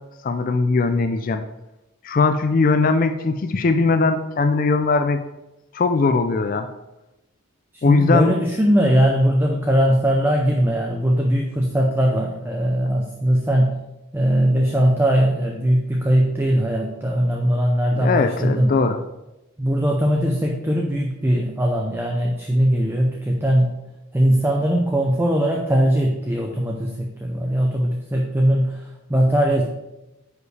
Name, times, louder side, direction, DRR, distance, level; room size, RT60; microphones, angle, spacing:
voice 1, 0.2-1.4 2.0-5.2 5.7-6.7 7.8-8.3 18.0-19.0, left 4 dB, 40° left, 8 dB, 0.3 m, -19 dB
voice 2, 7.7-13.8 14.1-18.8 19.6-23.7 24.1-29.6, equal, 10° right, 0 dB, 0.5 m, -20 dB
9.4 x 5.0 x 3.3 m, 0.96 s
head